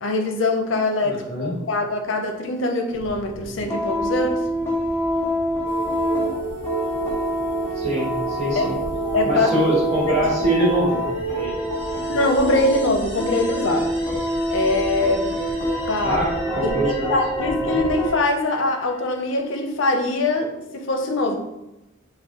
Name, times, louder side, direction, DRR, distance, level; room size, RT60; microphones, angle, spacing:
voice 1, 0.0-4.4 8.5-8.7 9.1-9.5 10.1-10.2 12.1-13.9 14.5-15.3 15.9-16.2 16.6-21.4, left 2 dB, 75° left, 4 dB, 0.5 m, -23 dB
voice 2, 1.0-1.5 7.7-8.1 8.4-8.7 9.2-11.0 11.3-11.5 11.9-12.1 16.0-17.2 17.5-17.8, right 1 dB, 40° right, -4 dB, 1.2 m, -24 dB
sound 1, 2.9-18.1, equal, 15° left, 0.6 m, -26 dB
sound 2, 5.7-11.5, right 6 dB, 60° right, 0.5 m, -33 dB
sound 3, 10.2-19.5, left 1 dB, 10° right, 1.1 m, -41 dB
4.0 x 2.1 x 3.6 m, 0.95 s
head